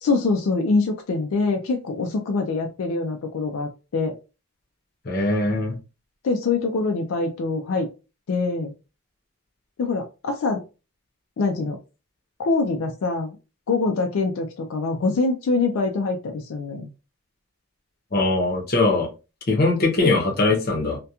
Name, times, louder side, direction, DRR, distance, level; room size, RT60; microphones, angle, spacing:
voice 1, 0.0-4.1 6.2-7.9 8.3-8.7 9.8-10.6 11.4-11.8 12.4-13.4 13.7-16.9, left 3 dB, 75° left, 4 dB, 0.4 m, -24 dB
voice 2, 5.1-5.7 18.1-19.1 19.5-21.0, left 2 dB, 45° left, 1 dB, 0.7 m, -21 dB
2.8 x 2.2 x 2.3 m, 0.30 s
head